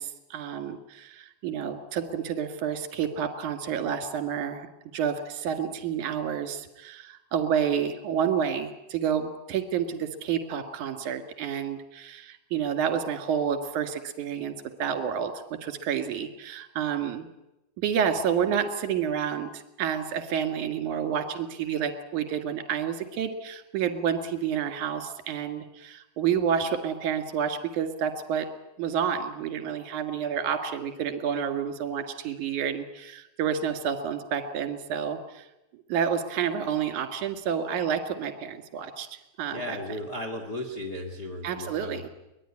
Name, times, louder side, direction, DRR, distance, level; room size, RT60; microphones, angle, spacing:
voice 1, 0.0-14.5 14.8-17.3 17.8-28.5 28.8-35.5 35.9-39.1 39.4-39.8 41.4-42.1, right 8 dB, 55° right, 8 dB, 2.7 m, -29 dB
voice 2, 39.5-42.1, left 1 dB, 80° left, 1 dB, 0.9 m, -35 dB
23.0 x 18.5 x 9.8 m, 0.95 s
omnidirectional pair, 5.1 m